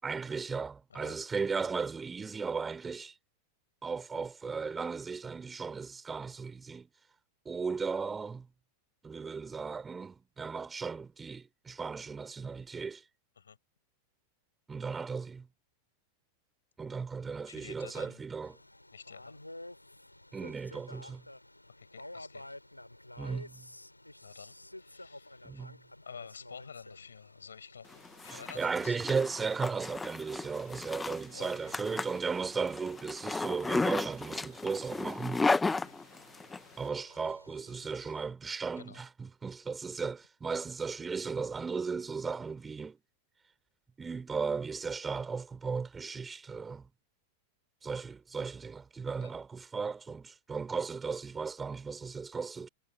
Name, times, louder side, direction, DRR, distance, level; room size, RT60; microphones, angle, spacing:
voice 1, 0.0-3.1 3.8-6.9 7.5-8.5 9.0-13.0 14.7-15.5 16.8-18.6 20.3-21.2 23.2-23.7 25.4-25.8 28.3-35.5 36.8-43.0 44.0-46.9 47.8-52.7, right 5 dB, 15° right, 5.8 m, -36 dB
voice 2, 17.5-18.2 18.9-19.4 21.8-22.4 24.2-25.7 26.0-27.9 28.2-29.1 31.3-31.8 35.7-35.9 38.8-39.0 49.2-49.4, left 6 dB, 70° left, 6.8 m, -50 dB
sound 1, 18.4-38.2, left 1 dB, 85° left, 5.1 m, -53 dB
Zipper (clothing), 27.9-36.6, left 3 dB, 10° left, 1.6 m, -34 dB
figure-of-eight pair, 90°, 0 cm